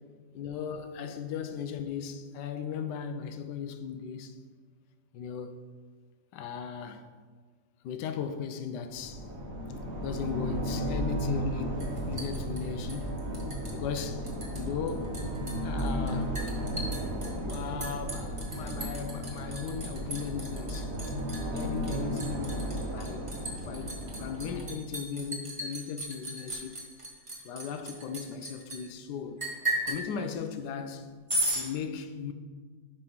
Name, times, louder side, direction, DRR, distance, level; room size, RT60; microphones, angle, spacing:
voice 1, 0.3-4.4 5.1-5.6 6.3-7.1 7.8-9.3 10.0-13.2 13.7-15.2 15.6-16.3 17.4-21.1 21.5-26.8 27.4-29.4 29.8-31.1 31.5-32.3, left 7 dB, 75° left, 1.1 m, -37 dB
sound 1, 8.9-24.6, equal, 45° right, 1.0 m, -34 dB
Liquid, 11.8-13.7 14.0-14.6 14.9-28.8 29.4-30.0 31.3-31.7, right 1 dB, 20° right, 1.1 m, -36 dB
5.6 x 5.1 x 5.4 m
omnidirectional pair, 2.0 m